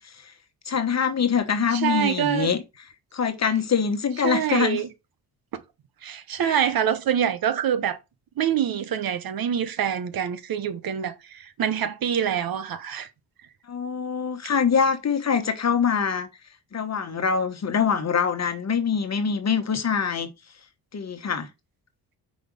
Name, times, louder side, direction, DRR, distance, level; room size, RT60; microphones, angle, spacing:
voice 1, 0.6-2.6 3.1-4.8 6.4-6.7 13.7-16.3 16.7-20.3 20.9-21.5, left 6 dB, 40° left, 1.2 m, -24 dB
voice 2, 1.7-2.5 4.2-4.9 6.0-8.0 8.4-13.1, right 9 dB, 60° right, 1.0 m, -25 dB
4.9 x 4.3 x 5.3 m
cardioid pair, 80°, 40 cm